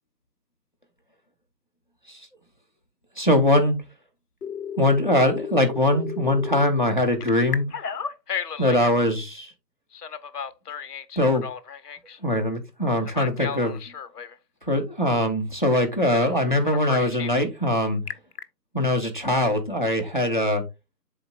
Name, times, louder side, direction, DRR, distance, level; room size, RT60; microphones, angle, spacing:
voice 1, 3.2-3.8 4.8-7.7 8.6-9.5 11.2-11.4 12.2-13.8 14.6-18.0 18.7-20.6, left 1 dB, 30° left, 5 dB, 0.7 m, -22 dB
Telephone, 4.4-6.7 7.2-9.0 9.9-12.2 13.0-14.3 16.1-16.3 16.6-17.4 17.9-18.4, left 7 dB, 65° left, 0.7 m, -34 dB
11.0 x 3.9 x 2.3 m, 0.25 s
figure-of-eight pair, 175°, 50 cm